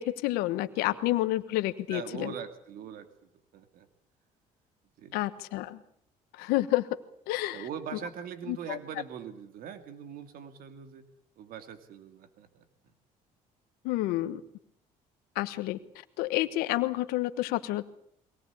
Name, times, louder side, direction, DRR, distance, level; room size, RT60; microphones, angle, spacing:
voice 1, 0.0-2.3 5.1-5.8 6.3-6.9 7.3-7.7 8.5-8.8 13.8-14.4 15.3-15.8 16.2-17.8, left 16 dB, 85° left, 11 dB, 1.3 m, -29 dB
voice 2, 1.9-3.9 5.0-5.2 7.5-11.1 11.4-12.6, right 8 dB, 70° right, 9 dB, 2.5 m, -42 dB
22.5 x 18.5 x 8.4 m, 0.70 s
supercardioid pair, 85°, 15 cm